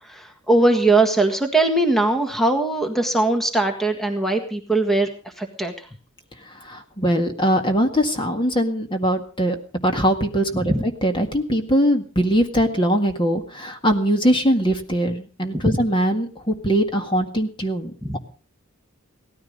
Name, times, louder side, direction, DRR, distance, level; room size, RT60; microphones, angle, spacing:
voice 1, 0.0-5.9 10.5-10.8 15.5-15.8 18.0-18.2, right 2 dB, ahead, 5 dB, 1.7 m, -20 dB
voice 2, 6.6-18.2, equal, 25° left, 5 dB, 1.8 m, -21 dB
17.5 x 14.0 x 5.3 m, 0.39 s
head